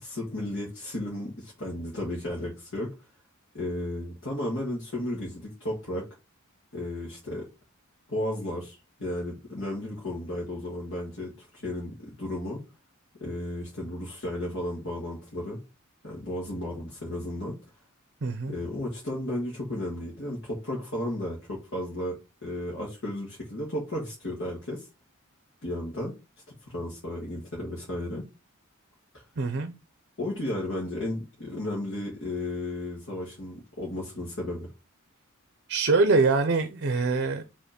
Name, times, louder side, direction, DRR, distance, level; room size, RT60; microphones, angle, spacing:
voice 1, 0.0-2.9 3.5-6.1 6.7-7.5 8.1-12.6 13.2-15.6 16.0-17.5 18.5-24.9 25.6-26.1 26.7-28.2 29.1-29.2 30.2-34.7, left 1 dB, 60° left, 2.0 m, -34 dB
voice 2, 18.2-18.5 29.4-29.7 35.7-37.4, right 3 dB, 50° right, 0.6 m, -24 dB
5.1 x 3.6 x 5.1 m
head